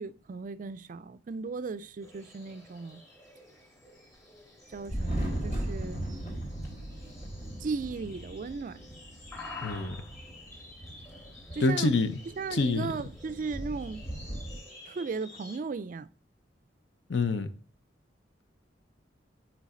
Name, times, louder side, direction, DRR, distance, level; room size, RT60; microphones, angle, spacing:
voice 1, 0.0-3.0 4.7-6.1 7.6-8.8 11.5-12.0 12.4-14.1 14.9-16.1, right 4 dB, 45° right, 0.3 m, -36 dB
sound 1, 2.0-15.6, left 2 dB, 15° left, 2.7 m, -50 dB
Thunder, 4.7-14.6, right 1 dB, 45° left, 2.7 m, -38 dB
voice 2, 9.6-10.0 11.6-12.1 12.5-12.9 17.1-17.5, left 3 dB, 70° left, 0.7 m, -26 dB
7.2 x 4.6 x 3.7 m
head